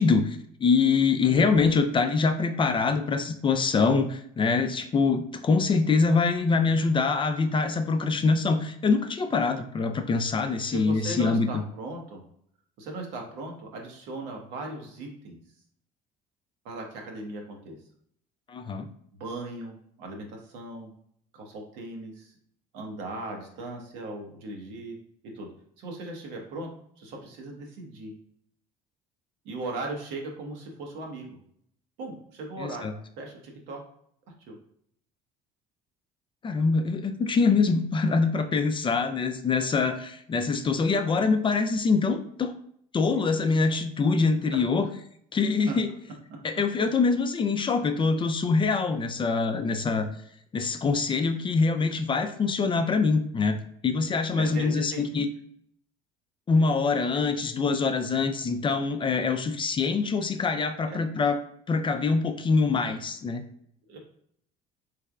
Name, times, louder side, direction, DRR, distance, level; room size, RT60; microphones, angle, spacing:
voice 1, 0.0-11.5 18.5-18.9 32.6-32.9 36.4-42.5 42.9-44.9 45.3-45.9 46.4-50.1 50.5-53.6 53.8-55.3 56.5-61.4 61.7-63.4, left 4 dB, 25° left, 7 dB, 0.4 m, -24 dB
voice 2, 10.7-12.2 12.8-15.4 16.6-17.8 19.1-20.9 21.3-22.3 22.7-25.0 25.3-25.5 25.8-26.7 27.0-28.1 29.4-31.4 32.0-33.8 34.5-34.6 45.7-45.8 54.3-55.1 60.9-61.1 63.9-64.0, right 2 dB, 75° right, 1 dB, 1.0 m, -38 dB
3.6 x 3.2 x 2.3 m, 0.67 s
supercardioid pair, 90°, 19 cm